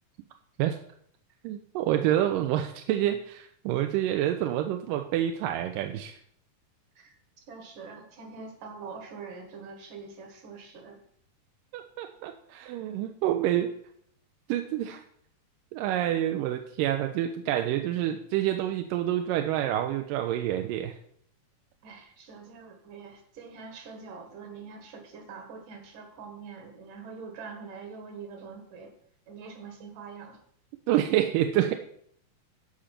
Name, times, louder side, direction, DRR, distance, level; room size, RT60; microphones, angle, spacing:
voice 1, 1.4-6.2 11.7-13.7 14.5-15.0 15.7-21.0 30.9-31.8, right 12 dB, 90° right, 5 dB, 2.3 m, -28 dB
voice 2, 7.5-11.0 21.8-28.9 29.3-30.4, right 5 dB, 70° right, 4 dB, 3.3 m, -44 dB
14.0 x 5.1 x 5.9 m, 0.65 s
omnidirectional pair, 3.8 m